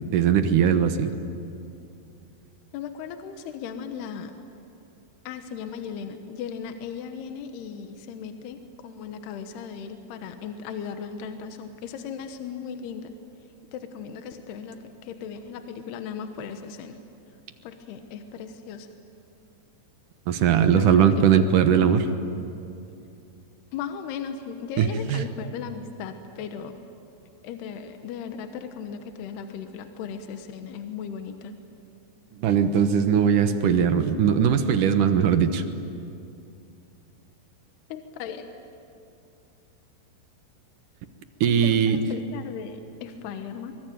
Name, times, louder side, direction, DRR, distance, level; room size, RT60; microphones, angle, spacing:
voice 1, 0.1-1.1 20.3-22.0 24.8-25.2 32.4-35.6 41.4-42.0, right 8 dB, 65° right, 8 dB, 2.2 m, -20 dB
voice 2, 2.7-4.3 5.3-13.1 13.7-17.0 17.6-18.9 20.7-22.2 23.7-26.8 27.4-31.6 37.9-38.5 41.5-43.8, left 7 dB, 75° left, 7 dB, 3.2 m, -37 dB
25.0 x 24.0 x 9.2 m, 2.6 s
omnidirectional pair, 4.9 m